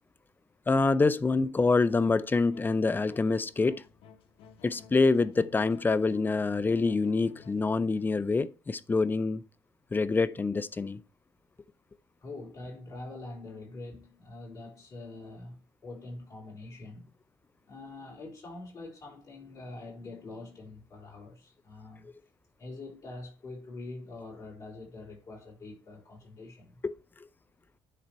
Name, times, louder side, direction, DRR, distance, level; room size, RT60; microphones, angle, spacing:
voice 1, 0.7-3.8 4.6-9.4 9.9-11.0 22.0-22.1 26.8-26.9, left 3 dB, 20° left, 0.6 m, -26 dB
sound 1, 2.2-7.6, left 6 dB, 75° left, 1.0 m, -54 dB
voice 2, 12.2-17.1 17.7-22.1 22.6-26.8, left 2 dB, 40° left, 4.6 m, -44 dB
10.0 x 3.9 x 4.6 m
cardioid pair, 100°, 10 cm